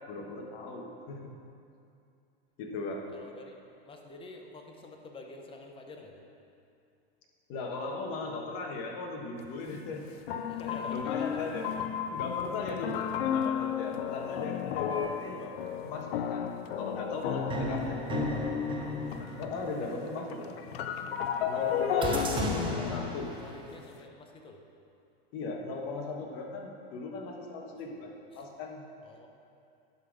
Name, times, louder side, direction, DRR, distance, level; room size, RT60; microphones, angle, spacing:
voice 1, 0.1-1.3 2.6-3.1 7.5-11.7 12.1-18.5 19.4-20.6 21.4-22.3 22.9-23.3 25.3-28.8, left 3 dB, 45° left, 0 dB, 1.4 m, -38 dB
voice 2, 3.1-6.2 10.5-11.2 17.7-17.8 21.8-24.6 28.3-28.4 29.0-29.3, left 2 dB, 15° left, 2 dB, 0.8 m, -48 dB
sound 1, 9.4-9.5 10.3-19.8 20.0-24.0, left 8 dB, 75° left, 0.6 m, -33 dB
sound 2, 14.9-16.0 17.5-20.2 22.0-23.7, right 3 dB, 15° right, 0.7 m, -37 dB
11.5 x 4.1 x 4.8 m, 2.5 s
hypercardioid pair, 125°, 31 cm